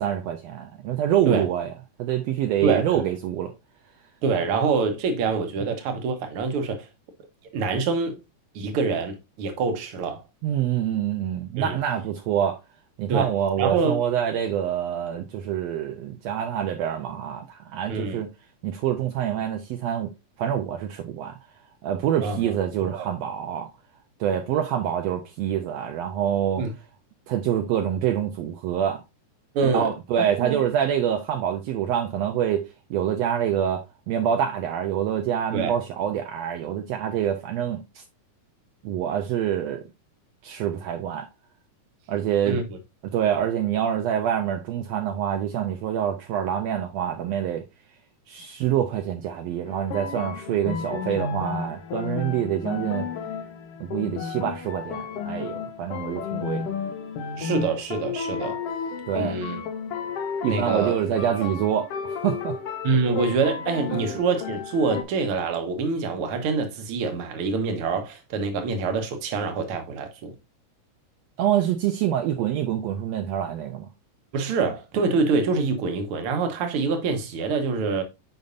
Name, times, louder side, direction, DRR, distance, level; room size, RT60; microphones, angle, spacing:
voice 1, 0.0-1.7 2.0-3.5 10.4-12.6 13.0-18.3 18.6-20.1 20.4-21.3 21.8-23.7 24.2-26.6 27.3-29.0 29.6-37.8 38.8-39.8 40.4-41.3 42.1-42.6 43.1-47.6 48.3-53.1 53.8-56.7 59.1-59.4 60.4-62.6 71.4-73.9, right 10 dB, 80° right, 1.5 m, -26 dB
voice 2, 2.6-3.0 4.2-6.9 7.5-8.2 8.5-10.2 11.6-11.8 13.1-13.3 13.6-14.0 17.9-18.2 22.2-22.5 22.9-23.1 26.6-26.7 29.5-29.9 30.4-30.6 35.5-35.7 42.5-42.8 57.4-58.6 59.1-59.6 60.5-61.0 61.4-61.5 62.8-70.3 74.3-78.0, right 4 dB, 60° right, 1.6 m, -25 dB
sound 1, 49.7-65.0, left 6 dB, 75° left, 1.4 m, -32 dB
7.0 x 5.3 x 2.5 m
omnidirectional pair, 3.6 m